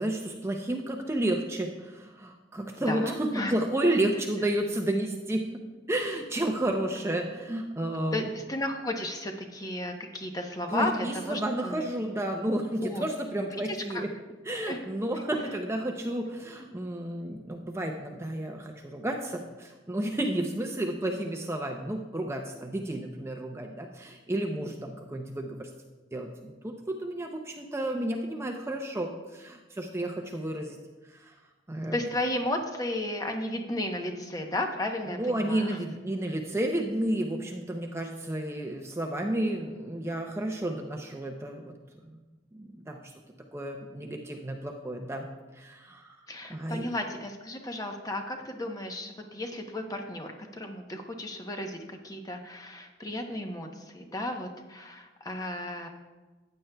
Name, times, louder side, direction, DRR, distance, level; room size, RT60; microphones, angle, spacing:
voice 1, 0.0-5.4 5.9-8.3 10.7-14.1 14.5-25.7 26.1-30.8 31.1-31.3 31.7-32.0 35.1-41.7 42.5-43.0 43.5-45.3 45.5-46.2 46.5-46.9, right 1 dB, 15° right, 2 dB, 0.5 m, -31 dB
voice 2, 2.9-3.5 8.1-11.9 12.8-13.1 13.4-14.0 14.5-14.8 31.9-35.8 46.3-55.9, left 1 dB, 20° left, 4 dB, 0.7 m, -34 dB
14.5 x 8.9 x 2.2 m, 1.2 s
head